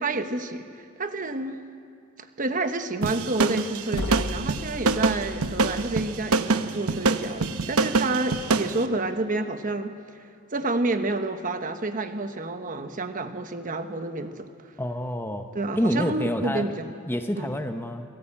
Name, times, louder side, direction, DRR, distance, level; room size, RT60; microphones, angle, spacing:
voice 1, 0.0-1.6 2.2-10.0 10.5-14.5 15.5-17.0 17.3-17.6, right 2 dB, 40° right, 8 dB, 1.1 m, -29 dB
sound 1, 3.0-8.8, right 3 dB, 85° right, 1.0 m, -25 dB
sound 2, 3.9-6.0, left 2 dB, 85° left, 1.3 m, -35 dB
voice 2, 14.8-15.5 15.8-16.7 17.1-18.0, equal, 10° left, 7 dB, 0.9 m, -27 dB
24.5 x 17.5 x 8.7 m, 2.5 s
head